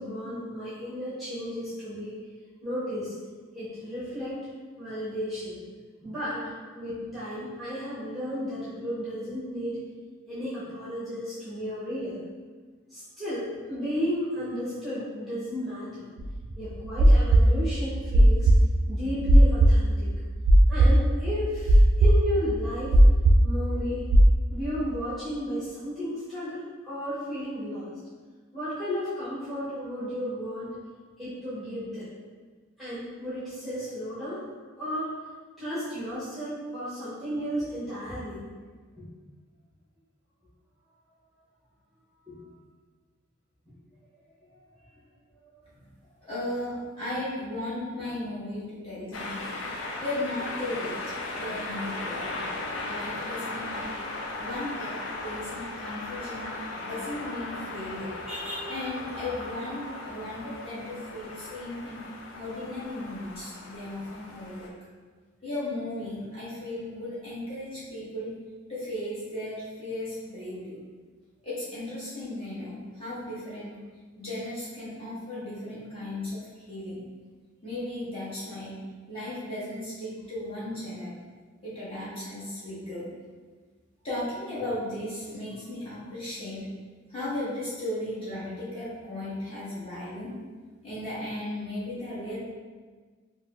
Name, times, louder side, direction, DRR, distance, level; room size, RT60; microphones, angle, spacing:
voice 1, 0.0-2.1 2.6-3.1 3.5-4.4 4.8-5.6 6.0-6.5 6.7-9.8 10.3-12.2 12.9-16.1 16.6-18.5 18.9-20.1 20.7-23.0 23.4-24.0 24.5-27.9 28.5-30.7 31.2-32.1 32.8-34.4 34.8-35.2 35.6-38.4 39.0-39.1 42.3-42.4 44.4-44.5 86.2-86.3, equal, ahead, -13 dB, 0.9 m, -33 dB
sound 1, 16.2-24.3, right 1 dB, 70° right, 0.3 m, -17 dB
voice 2, 46.3-49.4 50.0-52.4 52.8-53.9 54.4-62.0 62.3-64.7 65.4-68.3 68.7-70.8 71.4-73.8 74.2-77.0 77.6-78.8 79.1-81.1 81.6-83.1 84.0-86.7 87.1-90.3 90.8-92.4, left 1 dB, 30° left, -11 dB, 1.3 m, -36 dB
sound 2, 49.1-64.7, left 2 dB, 75° left, 0.5 m, -37 dB
4.6 x 2.2 x 2.3 m, 1.4 s
head